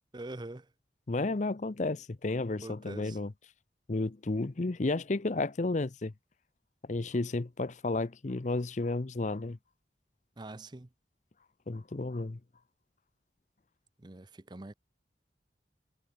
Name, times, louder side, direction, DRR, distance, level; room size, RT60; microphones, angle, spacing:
voice 1, 0.1-0.7 2.6-3.2 10.4-10.9 14.0-14.7, right 2 dB, 25° right, 0.6 m, -44 dB
voice 2, 1.1-3.3 3.9-6.1 6.9-9.6 11.7-12.4, left 2 dB, 40° left, 0.6 m, -32 dB
head